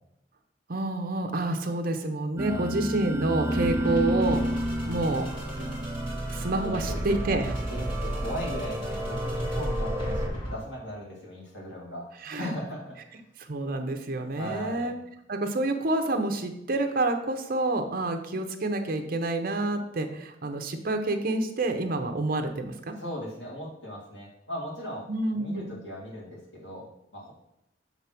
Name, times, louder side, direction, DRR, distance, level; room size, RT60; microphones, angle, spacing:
voice 1, 0.7-4.4 4.8-5.3 5.6-5.7 6.3-7.5 12.2-12.5 13.5-15.0 15.3-23.0 25.1-25.7, right 2 dB, 50° right, 6 dB, 0.8 m, -28 dB
sound 1, 2.4-10.3, equal, 15° right, 0.4 m, -31 dB
sound 2, 3.4-10.6, right 1 dB, 25° left, 2.2 m, -37 dB
voice 2, 6.6-7.2 7.7-13.2 14.4-14.9 23.0-25.0 25.3-26.9 27.1-27.3, equal, 80° left, -6 dB, 2.3 m, -38 dB
7.1 x 3.4 x 5.9 m, 0.81 s
head